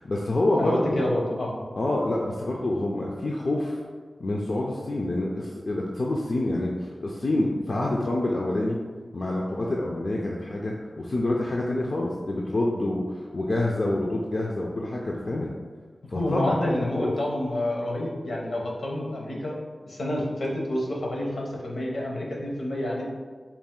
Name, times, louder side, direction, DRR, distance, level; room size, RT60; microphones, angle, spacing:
voice 1, 0.0-1.0 1.8-3.8 4.2-6.7 7.0-8.8 9.1-15.5 16.1-16.6 16.9-17.1, left 1 dB, 55° left, -2 dB, 0.4 m, -27 dB
voice 2, 0.6-1.6 16.1-19.6 19.8-23.1, left 1 dB, 75° left, -2 dB, 0.8 m, -28 dB
4.2 x 2.4 x 3.6 m, 1.5 s
wide cardioid pair, 100°, 0 cm